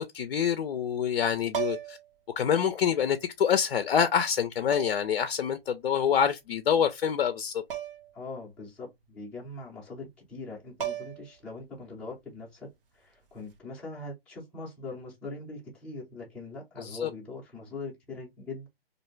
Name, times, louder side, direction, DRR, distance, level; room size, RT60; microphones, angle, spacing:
voice 1, 0.0-2.0 2.4-7.6 16.8-17.1, left 8 dB, 65° left, 0.4 m, -26 dB
sound 1, 1.5-2.1 3.4-3.5 4.7-5.2 7.7-8.1 8.4-8.5 10.4-10.5 10.8-11.4 13.3-13.6, right 10 dB, 60° right, 0.9 m, -35 dB
voice 2, 8.1-18.7, left 3 dB, 5° left, 0.5 m, -42 dB
2.5 x 2.2 x 3.1 m
hypercardioid pair, 145°, 30 cm